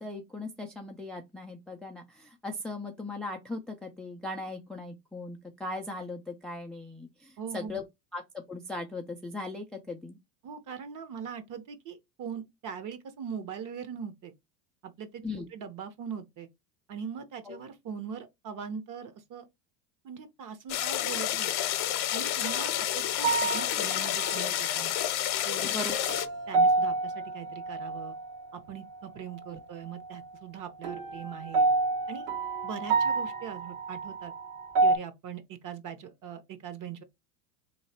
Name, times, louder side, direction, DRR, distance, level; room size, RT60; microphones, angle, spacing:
voice 1, 0.0-7.8 8.1-8.2 8.5-10.2 15.2-15.5 17.5-17.6 25.7-26.0, left 2 dB, ahead, 0.3 m, -38 dB
voice 2, 7.4-7.8 10.4-14.3 14.8-15.2 15.5-16.5 16.9-19.5 20.0-21.5 22.1-24.9 25.4-25.8 26.5-28.2 28.5-31.7 32.1-32.3 32.6-34.3 34.8-37.0, right 7 dB, 40° right, 1.0 m, -41 dB
sound 1, 20.7-26.3, left 12 dB, 55° left, 0.8 m, -29 dB
sound 2, 22.5-22.8 23.2-25.1 25.5-28.4 30.8-35.0, right 3 dB, 65° right, 1.4 m, -29 dB
3.2 x 2.8 x 4.1 m
supercardioid pair, 100°, 47 cm